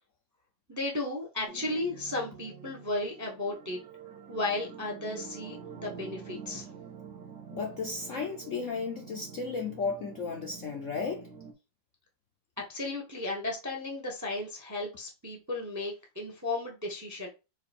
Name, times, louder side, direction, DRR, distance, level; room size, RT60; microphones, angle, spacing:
voice 1, 0.7-3.8 4.3-6.7 12.7-17.3, left 2 dB, 15° right, 0.6 m, -34 dB
sound 1, 1.5-11.5, right 6 dB, 60° right, 0.8 m, -47 dB
voice 2, 7.5-11.3, left 4 dB, 60° left, 0.8 m, -34 dB
4.6 x 2.4 x 4.2 m
omnidirectional pair, 2.0 m